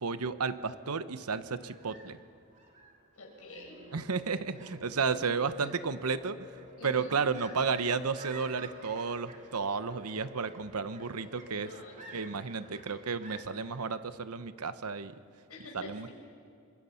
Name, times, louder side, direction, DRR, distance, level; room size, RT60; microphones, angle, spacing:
voice 1, 0.0-2.2 3.9-6.4 6.8-11.7 12.1-15.1 15.7-16.1, right 5 dB, 85° right, 12 dB, 0.9 m, -32 dB
sound 1, 1.5-13.8, right 2 dB, 30° right, 2.5 m, -54 dB
voice 2, 3.2-3.8 6.8-7.2 11.5-12.3 15.5-16.1, left 1 dB, 75° left, 0 dB, 5.8 m, -47 dB
sound 2, 3.5-12.4, left 1 dB, 60° right, 5.9 m, -53 dB
28.5 x 24.5 x 5.7 m, 2.3 s
head